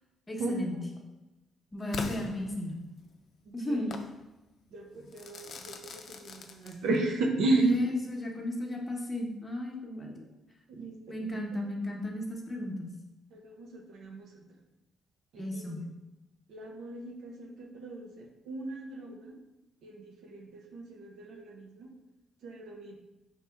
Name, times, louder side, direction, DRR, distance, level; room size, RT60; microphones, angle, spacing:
voice 1, 0.3-0.8 1.7-2.8 3.5-3.9 7.5-10.1 11.1-12.9 15.4-15.8, left 1 dB, 20° left, 0 dB, 0.8 m, -34 dB
Crackle / Fireworks, 1.9-3.1 3.9-4.1 5.1-7.1, left 4 dB, 60° left, 0.4 m, -41 dB
voice 2, 4.7-5.5 5.9-6.0 6.6-7.8 10.8-10.9 13.3-13.7 14.0-14.2 15.3-15.6 16.5-17.3 17.7-18.1 18.5-19.1 19.8-20.0 20.3-20.4 20.7-21.5 22.4-23.0, right 2 dB, 80° right, 2 dB, 0.6 m, -32 dB
4.2 x 2.9 x 3.4 m, 1.0 s
cardioid pair, 90°, 0 cm